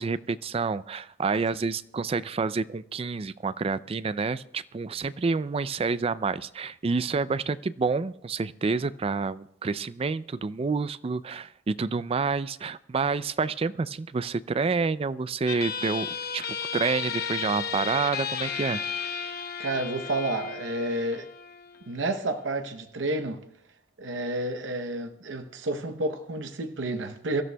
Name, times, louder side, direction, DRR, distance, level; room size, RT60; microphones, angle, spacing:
voice 1, 0.0-16.4 16.7-18.8 19.1-19.4, right 4 dB, 30° right, 0.4 m, -28 dB
sound 1, 15.5-22.5, left 7 dB, 55° left, 0.9 m, -34 dB
voice 2, 19.6-21.3 21.9-23.4 24.0-27.4, right 2 dB, 75° right, 0.8 m, -30 dB
24.5 x 13.5 x 2.3 m
head